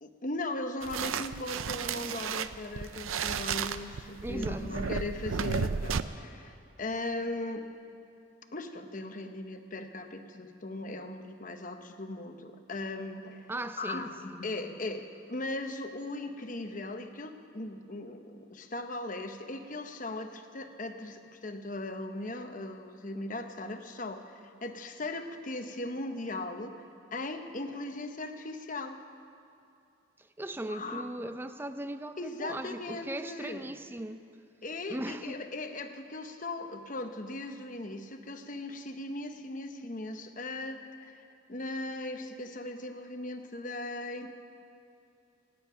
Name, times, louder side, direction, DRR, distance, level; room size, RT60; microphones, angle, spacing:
voice 1, 0.0-7.6 8.5-13.5 13.8-26.8 27.1-29.0 30.7-31.3 32.2-33.7 34.6-44.3, left 2 dB, 40° left, 6 dB, 1.0 m, -38 dB
sound 1, 0.8-6.0, right 6 dB, 85° right, 0.5 m, -33 dB
voice 2, 4.2-4.7 13.5-14.1 30.4-34.2 34.9-35.4, right 1 dB, 10° right, 10 dB, 0.5 m, -38 dB
26.0 x 9.6 x 5.6 m, 2.6 s
head